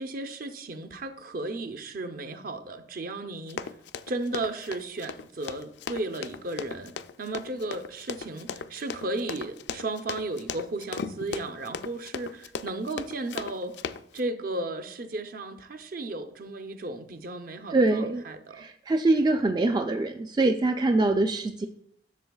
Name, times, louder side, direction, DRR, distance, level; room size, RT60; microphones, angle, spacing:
voice 1, 0.0-3.7 4.1-6.9 7.2-13.7 14.1-18.6, right 2 dB, 55° right, 7 dB, 0.7 m, -34 dB
Run, 3.5-14.2, left 6 dB, 75° left, 0.4 m, -37 dB
voice 2, 17.7-18.2 18.5-21.7, right 2 dB, 25° right, 6 dB, 0.3 m, -24 dB
11.5 x 6.7 x 2.3 m, 0.72 s
head